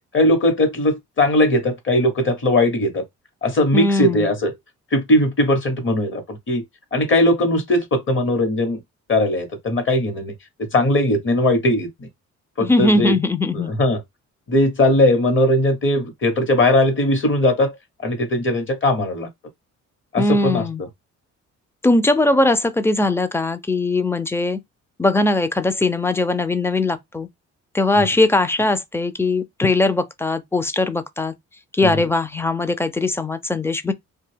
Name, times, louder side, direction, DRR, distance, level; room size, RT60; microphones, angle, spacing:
voice 1, 0.1-3.0 3.4-4.5 4.9-6.6 6.9-8.8 9.1-10.3 10.7-12.1 12.6-13.1 13.5-14.0 14.5-17.8 18.0-19.3 20.1-20.6 27.9-28.0 31.8-32.1, left 1 dB, 40° left, 1.0 m, -19 dB
voice 2, 3.7-4.3 12.6-13.7 20.2-20.8 21.8-24.6 25.0-27.3 27.7-31.3 31.7-33.9, left 2 dB, 10° left, 0.4 m, -20 dB
2.7 x 2.2 x 3.2 m
cardioid pair, 90°, 30 cm